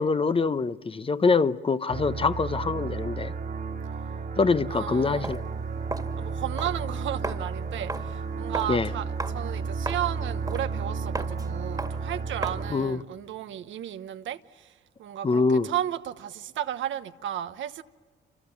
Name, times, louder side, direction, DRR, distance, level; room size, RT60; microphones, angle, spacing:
voice 1, 0.0-3.3 4.4-5.4 8.7-8.9 12.7-13.0 15.2-15.7, left 4 dB, 25° left, 0.8 m, -24 dB
sound 1, 1.9-12.7, right 5 dB, 50° right, 2.0 m, -33 dB
voice 2, 4.7-5.3 6.2-17.8, right 11 dB, 75° right, 1.0 m, -34 dB
Walk footsteps, 5.2-12.8, right 2 dB, 20° right, 1.9 m, -38 dB
27.0 x 27.0 x 7.1 m
cardioid pair, 90°, 20 cm